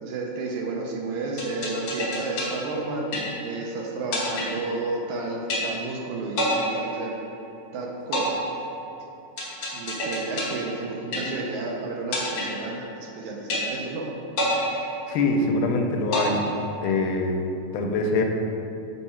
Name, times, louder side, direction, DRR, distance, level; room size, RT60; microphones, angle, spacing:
voice 1, 0.0-3.0 3.4-7.1 7.7-8.4 9.7-14.1, right 3 dB, 75° right, -1 dB, 1.9 m, -31 dB
sound 1, 1.4-3.7 4.1-5.1 5.5-6.0 6.4-7.6 8.1-11.7 12.1-13.1 13.5-14.0 14.4-15.6 16.1-17.1, left 1 dB, 55° left, 1.7 m, -29 dB
voice 2, 15.1-16.4 16.8-17.4 17.7-18.2, left 3 dB, 85° left, 2 dB, 2.1 m, -23 dB
7.2 x 4.6 x 4.3 m, 2.8 s
omnidirectional pair, 3.6 m